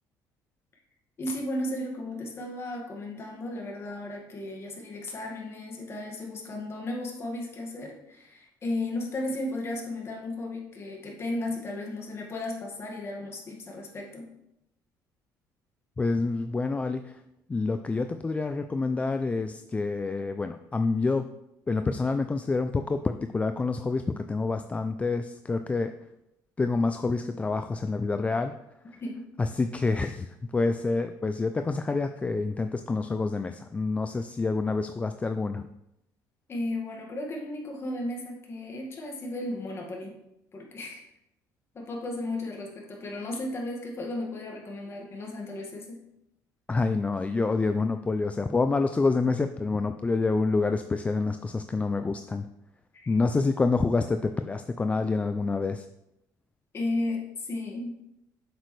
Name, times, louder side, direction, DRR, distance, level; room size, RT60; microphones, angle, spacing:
voice 1, 1.2-14.3 29.0-29.3 36.5-40.2 40.5-41.0 41.7-46.0 52.9-53.1 56.7-58.0, left 1 dB, 35° left, 0 dB, 1.8 m, -34 dB
voice 2, 16.0-17.2 17.5-21.3 21.7-25.9 26.6-28.5 29.4-35.7 46.7-52.5 53.1-55.9, left 3 dB, 15° left, 8 dB, 0.3 m, -27 dB
8.0 x 6.3 x 3.2 m, 0.84 s
cardioid pair, 120°, 8 cm